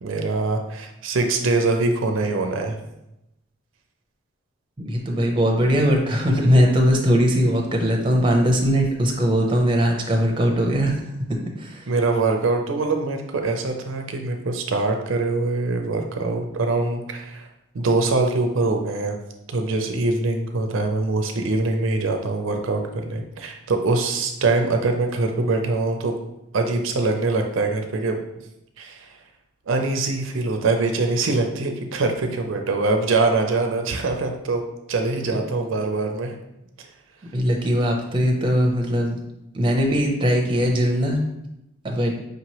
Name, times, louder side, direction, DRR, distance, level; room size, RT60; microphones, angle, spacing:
voice 1, 0.0-2.8 11.9-17.5 17.7-19.2 19.5-26.1 26.5-28.2 28.8-29.1 29.7-34.6 34.9-36.3 36.8-36.9, right 3 dB, 70° right, 4 dB, 0.5 m, -23 dB
voice 2, 4.8-11.0 11.6-11.9 35.3-35.4 37.3-39.2 39.5-41.2 41.8-42.1, equal, 25° right, 1 dB, 0.6 m, -20 dB
5.0 x 2.9 x 2.9 m, 0.87 s
head